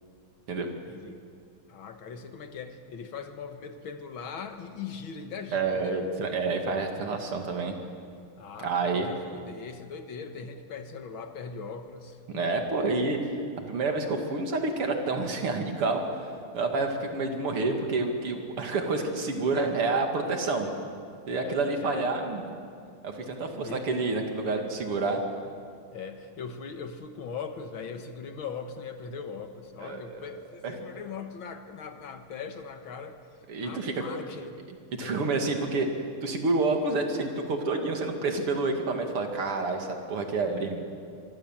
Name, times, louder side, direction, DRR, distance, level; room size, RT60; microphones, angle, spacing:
voice 1, 0.8-1.2 1.7-6.0 8.4-12.7 19.5-19.9 21.3-22.1 23.6-23.9 24.5-24.7 25.9-33.2 33.6-34.6 35.0-35.2 40.5-40.7, left 6 dB, 70° left, 7 dB, 2.2 m, -40 dB
voice 2, 5.5-7.7 8.6-9.1 12.3-13.3 13.7-16.0 16.5-20.7 21.3-22.4 23.0-25.2 29.8-30.2 30.6-30.7 33.5-34.0 34.9-35.9 36.2-40.8, right 3 dB, 85° right, 4 dB, 3.3 m, -28 dB
24.5 x 24.0 x 7.5 m, 2.3 s
omnidirectional pair, 2.4 m